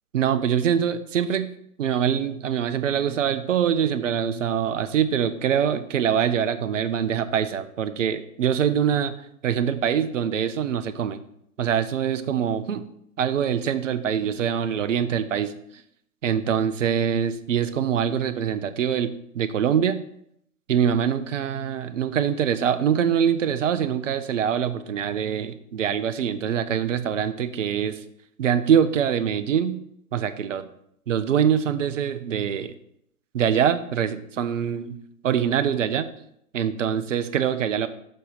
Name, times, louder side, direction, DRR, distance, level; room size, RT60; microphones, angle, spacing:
voice 1, 0.1-1.5 1.8-9.2 9.4-11.2 11.6-12.9 13.2-15.5 16.2-20.0 20.7-28.0 28.4-29.8 30.1-30.6 31.1-32.7 33.3-35.0 35.2-36.1 36.5-37.9, right 8 dB, 55° right, 12 dB, 0.7 m, -24 dB
6.6 x 4.1 x 6.5 m, 0.73 s
figure-of-eight pair, 130°, 44 cm